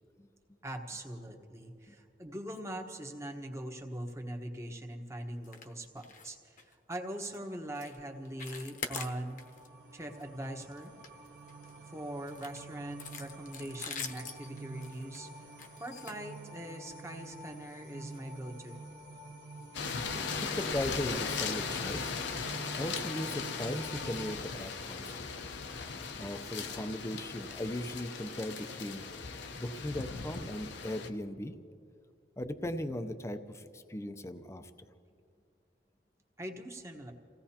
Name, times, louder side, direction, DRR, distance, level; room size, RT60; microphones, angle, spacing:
voice 1, 0.6-9.4 9.9-10.9 11.9-15.5 15.8-18.8 36.4-37.1, right 1 dB, 15° right, 3 dB, 1.2 m, -42 dB
sound 1, 5.4-5.7 6.0-6.3 6.6-6.7 7.2-7.4 7.7-8.0 8.2-9.7 10.0-10.2 10.6-11.7 12.3-16.9 17.6-17.8 18.1-18.2 18.7-18.8, left 5 dB, 50° left, 0.9 m, -44 dB
sound 2, 8.1-24.3, right 2 dB, 65° right, 1.0 m, -48 dB
sound 3, 19.7-31.1, left 5 dB, 80° left, 0.8 m, -38 dB
voice 2, 20.1-22.2 22.8-25.5 26.2-29.1 29.5-31.6 32.4-34.7, left 1 dB, 15° left, 9 dB, 0.6 m, -38 dB
29.0 x 16.5 x 2.9 m, 2.4 s
head